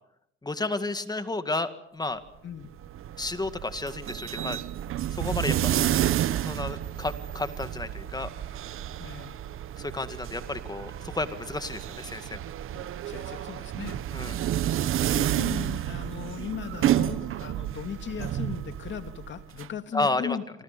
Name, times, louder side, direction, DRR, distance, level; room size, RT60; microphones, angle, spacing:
voice 1, 0.4-2.2 3.2-4.6 5.1-5.8 6.4-8.3 9.8-12.4 14.1-14.4 19.9-20.4, left 2 dB, 20° left, 10 dB, 2.0 m, -32 dB
voice 2, 2.4-2.7 9.0-9.4 12.7-14.0 14.4-14.5 15.1-20.4, left 8 dB, 60° left, 9 dB, 2.2 m, -37 dB
sound 1, 2.6-19.7, right 12 dB, 80° right, 1.0 m, -30 dB
28.5 x 24.5 x 6.8 m, 0.75 s
cardioid pair, 105°, 21 cm